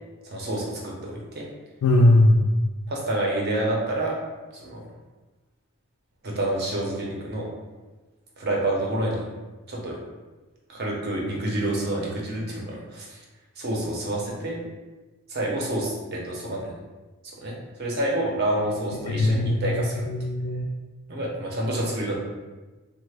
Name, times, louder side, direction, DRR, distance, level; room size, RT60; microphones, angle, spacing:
voice 1, 0.2-1.5 2.9-4.2 4.5-4.8 6.2-7.5 8.4-9.2 9.7-10.0 10.7-13.2 13.6-14.6 15.3-16.8 17.4-20.1 21.1-22.2, right 1 dB, 50° right, -2 dB, 0.7 m, -28 dB
voice 2, 1.8-2.6 19.1-20.7, left 1 dB, 85° left, 0 dB, 0.3 m, -20 dB
3.2 x 2.1 x 3.3 m, 1.2 s
head